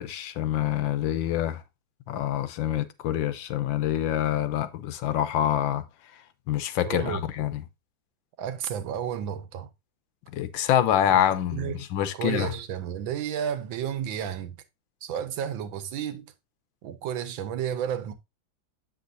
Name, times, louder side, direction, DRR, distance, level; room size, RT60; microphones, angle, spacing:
voice 1, 0.0-1.6 2.1-5.8 6.5-7.6 10.3-12.5, left 11 dB, 85° left, 1.5 m, -26 dB
voice 2, 6.8-7.2 8.4-9.7 11.1-11.2 11.5-11.9 12.1-14.5 15.0-16.3 16.8-18.1, right 9 dB, 85° right, 1.6 m, -32 dB
7.7 x 6.5 x 2.6 m
omnidirectional pair, 2.1 m